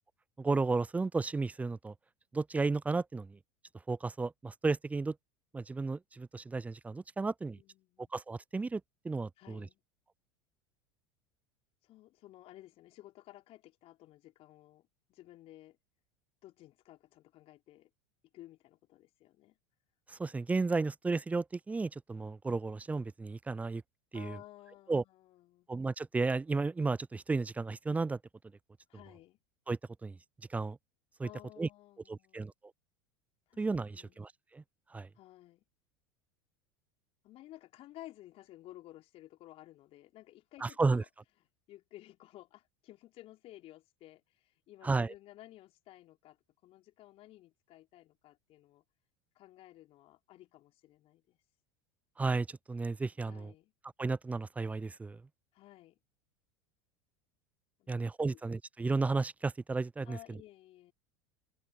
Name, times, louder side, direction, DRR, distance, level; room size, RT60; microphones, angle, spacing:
voice 1, 0.4-1.9 2.3-3.4 3.9-5.1 5.5-7.6 8.1-9.6 20.1-23.8 24.1-24.4 24.9-25.0 25.7-28.2 29.7-30.2 30.5-30.8 31.2-31.3 31.6-31.7 32.1-32.5 33.6-34.6 34.9-35.1 40.6-41.0 44.8-45.1 52.2-53.5 54.0-55.2 57.9-60.4, right 3 dB, 10° right, 0.4 m, -33 dB
voice 2, 7.2-8.1 9.4-9.8 11.8-15.8 16.4-17.9 18.3-19.6 24.1-25.7 28.9-29.4 31.2-32.5 33.5-33.6 33.9-34.2 35.1-35.6 37.2-41.1 41.7-46.4 46.6-48.8 49.3-51.4 53.2-53.7 55.5-56.0 57.8-58.4 60.0-60.9, left 15 dB, 45° left, 4.3 m, -55 dB
figure-of-eight pair, 80°, 14 cm